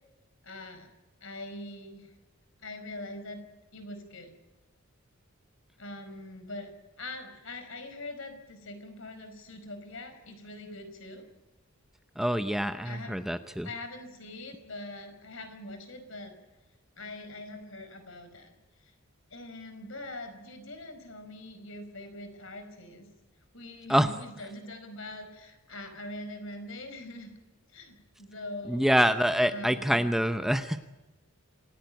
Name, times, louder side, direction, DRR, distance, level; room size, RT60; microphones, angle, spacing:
voice 1, 0.4-0.9 1.2-2.1 2.6-3.4 3.7-4.3 5.8-6.7 7.0-11.2 12.8-13.2 13.6-16.3 17.0-18.5 18.8-18.9 19.3-23.1 23.5-27.3 27.7-29.0 29.5-30.1, left 2 dB, 60° left, 8 dB, 5.0 m, -43 dB
voice 2, 12.2-13.7 23.9-24.1 28.7-30.8, equal, ahead, 9 dB, 0.7 m, -26 dB
27.5 x 16.5 x 9.2 m, 1.1 s
head